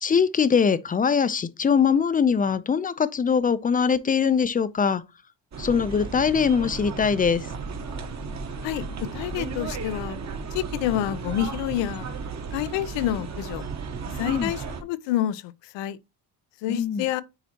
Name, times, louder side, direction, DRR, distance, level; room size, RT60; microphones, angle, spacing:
voice 1, 0.0-5.0 5.6-7.5 14.2-14.5 16.7-17.0, left 6 dB, 20° left, 0.5 m, -22 dB
sound 1, 5.5-14.8, right 5 dB, 40° right, 1.2 m, -34 dB
voice 2, 9.1-10.2 10.5-12.1 12.5-13.6 14.1-16.0 16.6-17.2, left 13 dB, 90° left, 0.7 m, -28 dB
9.6 x 4.1 x 2.9 m
cardioid pair, 115°, 43 cm